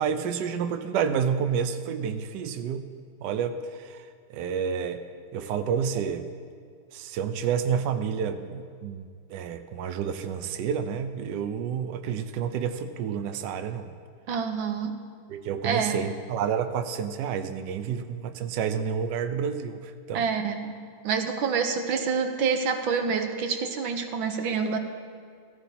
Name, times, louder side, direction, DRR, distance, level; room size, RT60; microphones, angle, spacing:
voice 1, 0.0-2.9 3.2-4.0 4.3-5.0 5.3-6.3 6.9-13.9 15.3-20.2, right 7 dB, 70° right, 8 dB, 1.2 m, -29 dB
voice 2, 14.3-15.0 15.6-16.0 20.1-20.7 21.0-24.8, right 5 dB, 90° right, 6 dB, 1.6 m, -27 dB
16.0 x 14.5 x 2.8 m, 2.2 s
omnidirectional pair, 2.1 m